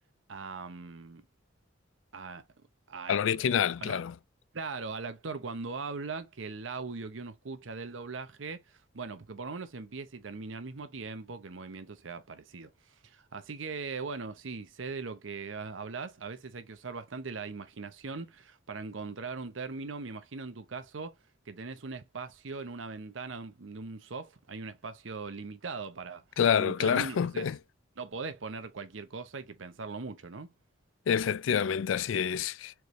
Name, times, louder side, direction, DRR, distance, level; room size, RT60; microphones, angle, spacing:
voice 1, 0.3-1.2 2.1-2.4 2.9-3.4 3.7-4.0 4.5-21.2 21.5-26.2 26.6-27.5 28.0-30.5, right 4 dB, 85° right, 0.8 m, -40 dB
voice 2, 3.1-4.1 26.4-27.6 31.1-32.7, left 8 dB, 85° left, 0.4 m, -27 dB
4.6 x 3.3 x 2.6 m
head